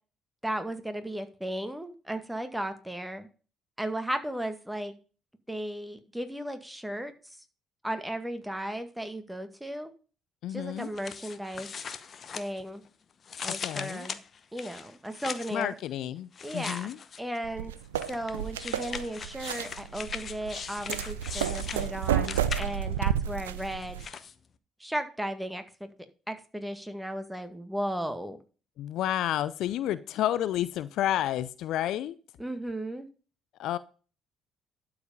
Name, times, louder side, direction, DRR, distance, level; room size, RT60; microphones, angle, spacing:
voice 1, 0.4-3.3 3.8-4.9 5.5-7.4 7.8-9.9 10.5-11.7 12.3-12.8 13.4-14.2 14.5-15.7 16.4-17.7 18.1-24.1 24.8-25.9 26.3-28.4 32.4-33.1, right 1 dB, 5° right, 1.9 m, -35 dB
voice 2, 10.4-10.9 13.6-14.1 15.5-17.0 28.8-32.1 33.6-33.8, left 12 dB, 65° left, 0.4 m, -30 dB
sound 1, 10.8-12.9 13.2-15.6 16.3-17.4 17.9-23.0 23.6-24.3, left 6 dB, 45° left, 0.9 m, -40 dB
sound 2, 17.4-24.1, right 10 dB, 85° right, 0.4 m, -31 dB
12.0 x 4.8 x 5.2 m
hypercardioid pair, 50°, 0 cm